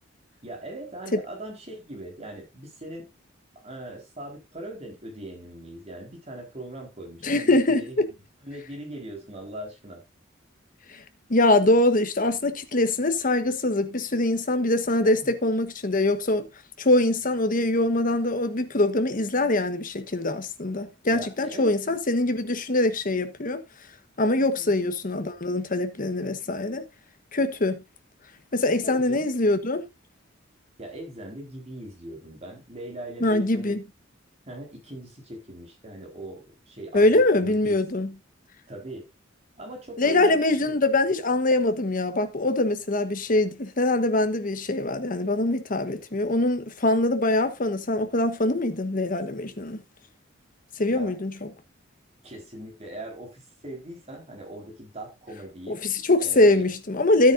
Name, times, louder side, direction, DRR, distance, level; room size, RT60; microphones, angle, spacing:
voice 1, 0.4-3.1 3.5-8.1 8.4-10.0 15.0-15.3 21.1-21.7 24.5-24.8 28.8-29.3 30.8-33.8 34.5-37.0 37.4-37.8 38.7-39.1 39.6-40.8 50.9-51.1 52.2-55.8 56.2-56.7, right 1 dB, 35° right, 4.4 m, -40 dB
voice 2, 7.2-8.1 10.9-11.0 11.3-16.5 16.8-23.6 24.2-26.8 27.3-27.8 28.5-29.8 33.2-33.8 36.9-38.1 40.0-49.8 50.8-51.5 55.7-57.3, left 2 dB, 45° left, 1.2 m, -23 dB
13.0 x 9.2 x 2.6 m
head